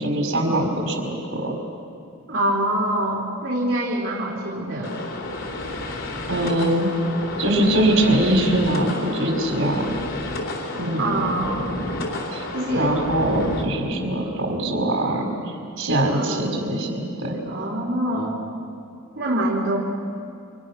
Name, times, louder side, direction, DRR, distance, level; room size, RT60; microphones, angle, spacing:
voice 1, 0.0-1.5 6.3-6.9 7.4-10.0 10.7-11.4 12.3-12.5 12.7-15.3 15.8-17.4, right 1 dB, 80° right, 1 dB, 5.2 m, -22 dB
voice 2, 2.3-5.0 11.0-11.7 12.5-12.9 16.2-16.6 17.5-18.4 19.2-19.8, right 1 dB, 65° right, -5 dB, 4.1 m, -25 dB
sound 1, 4.8-13.6, left 1 dB, 80° left, 3.8 m, -30 dB
29.5 x 26.5 x 6.3 m, 2.4 s
head